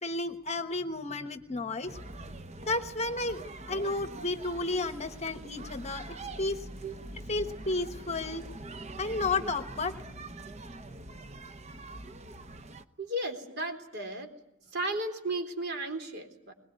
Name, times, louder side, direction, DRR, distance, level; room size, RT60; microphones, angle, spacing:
voice 1, 0.0-2.0 2.7-6.6 7.3-8.4 9.0-10.0, left 3 dB, 30° left, 9 dB, 1.1 m, -32 dB
sound 1, 1.9-12.8, right 2 dB, 30° right, 0.9 m, -44 dB
voice 2, 13.0-14.3 14.7-16.5, right 1 dB, 50° right, 5 dB, 3.8 m, -34 dB
22.0 x 21.0 x 9.5 m, 0.83 s
head